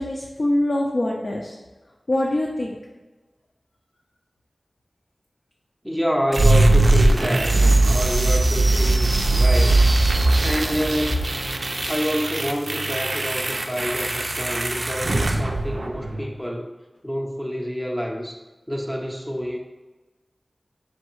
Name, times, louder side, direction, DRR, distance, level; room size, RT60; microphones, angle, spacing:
voice 1, 0.0-1.6 2.1-2.8, left 1 dB, 65° left, -2 dB, 0.4 m, -24 dB
voice 2, 5.8-9.8 10.1-11.4 11.9-16.7 17.0-18.4 18.7-19.6, equal, 5° left, 1 dB, 0.5 m, -28 dB
sound 1, 6.3-16.3, right 2 dB, 65° right, 0.3 m, -20 dB
4.5 x 3.2 x 3.0 m, 1.2 s
wide cardioid pair, 60°, 0 cm